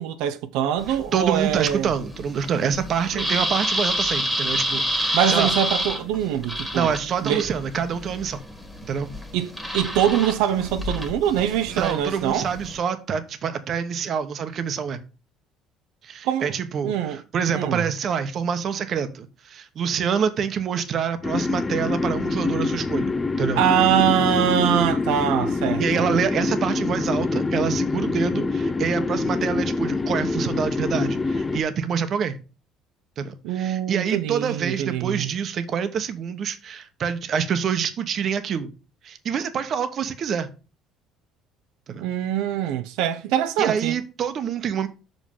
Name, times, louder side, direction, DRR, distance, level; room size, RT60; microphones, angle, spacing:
voice 1, 0.0-1.9 3.1-3.3 5.1-6.9 7.2-7.5 9.3-12.4 16.2-16.5 16.8-17.2 17.5-17.8 23.6-26.1 33.4-35.3 42.0-44.0, right 10 dB, 90° right, 0.7 m, -23 dB
sound 1, 0.8-12.8, equal, 5° right, 1.7 m, -29 dB
voice 2, 0.9-5.5 6.7-8.4 8.8-9.1 11.7-15.0 16.0-23.6 25.8-32.4 33.2-38.7 39.0-40.5 41.9-42.0 43.6-44.9, right 7 dB, 40° right, 1.1 m, -26 dB
sound 2, 21.2-31.6, left 3 dB, 15° left, 0.4 m, -25 dB
6.4 x 5.3 x 5.5 m
cardioid pair, 155°, 0 cm